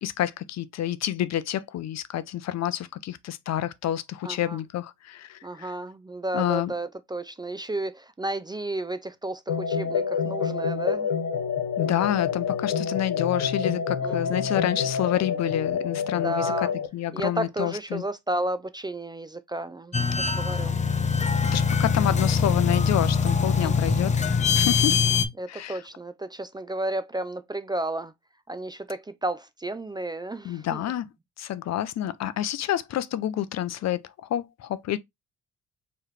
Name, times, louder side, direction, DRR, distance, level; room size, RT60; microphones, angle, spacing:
voice 1, 0.0-5.7 6.3-6.7 11.8-16.7 16.9-18.0 21.5-25.0 25.5-25.8 30.4-31.0 31.4-34.0 34.3-35.0, left 12 dB, 60° left, 0.6 m, -28 dB
voice 2, 4.2-4.6 5.4-11.1 14.0-14.5 16.2-16.7 17.1-20.8 23.6-24.2 25.4-28.1 28.5-30.8, right 1 dB, 15° right, 0.4 m, -32 dB
sound 1, 9.5-16.9, left 6 dB, 80° left, 1.2 m, -28 dB
sound 2, 19.9-25.3, left 5 dB, 25° left, 0.7 m, -23 dB
4.6 x 3.2 x 3.1 m
cardioid pair, 90°, 30 cm